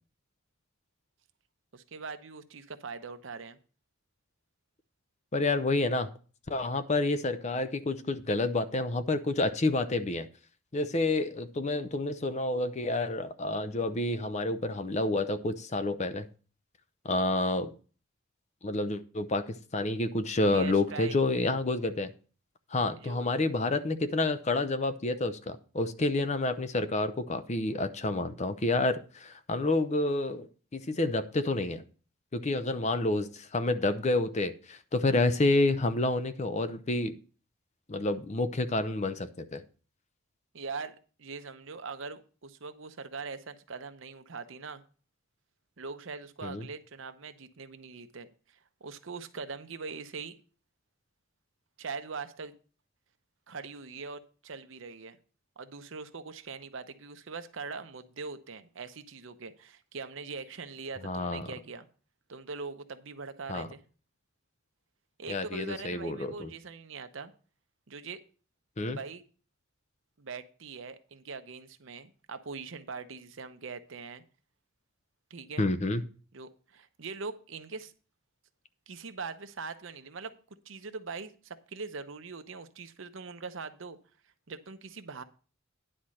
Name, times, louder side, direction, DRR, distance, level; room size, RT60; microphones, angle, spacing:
voice 1, 1.7-3.6 20.5-21.2 23.0-23.3 40.5-44.8 45.8-50.4 51.8-52.5 53.5-55.2 55.6-61.9 62.3-63.8 65.2-67.3 67.9-68.2 68.9-69.2 70.2-74.2 75.3-75.7 76.3-77.9 78.9-80.4 80.6-84.0 84.5-85.2, right 4 dB, 65° right, 0.8 m, -42 dB
voice 2, 5.3-6.1 6.5-10.3 10.7-16.3 17.0-17.7 18.6-22.1 22.7-31.8 32.3-37.1 37.9-39.6 46.4-46.7 61.0-61.5 63.5-63.7 65.3-66.5 68.8-69.0 75.6-76.0, left 2 dB, 35° left, 0.6 m, -29 dB
10.0 x 4.3 x 6.3 m
head